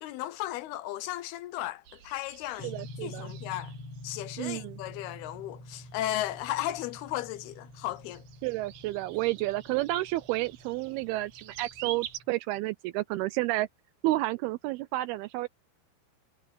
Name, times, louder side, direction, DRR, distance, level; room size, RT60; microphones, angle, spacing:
voice 1, 0.0-2.8 3.0-3.7 4.0-8.2, left 14 dB, 80° left, 2.5 m, -35 dB
sound 1, 1.8-12.2, right 11 dB, 65° right, 2.6 m, -48 dB
sound 2, 2.6-12.3, left 1 dB, 40° left, 2.7 m, -47 dB
voice 2, 2.6-3.3 4.4-4.8 8.4-13.7 14.0-15.5, right 18 dB, 85° right, 2.3 m, -31 dB
omnidirectional pair, 4.9 m